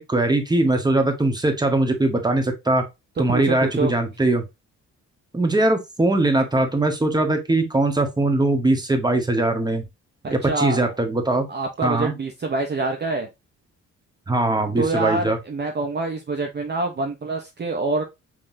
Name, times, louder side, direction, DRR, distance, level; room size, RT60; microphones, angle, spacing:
voice 1, 0.0-2.8 3.2-4.4 5.3-9.8 10.3-11.5 11.8-12.1 14.3-15.4, right 2 dB, 15° right, 6 dB, 1.4 m, -21 dB
voice 2, 3.3-3.9 10.2-10.9 11.5-13.3 14.8-18.0, right 3 dB, 35° right, 4 dB, 0.9 m, -26 dB
5.4 x 3.5 x 2.7 m, 0.22 s
cardioid pair, 90°, 30 cm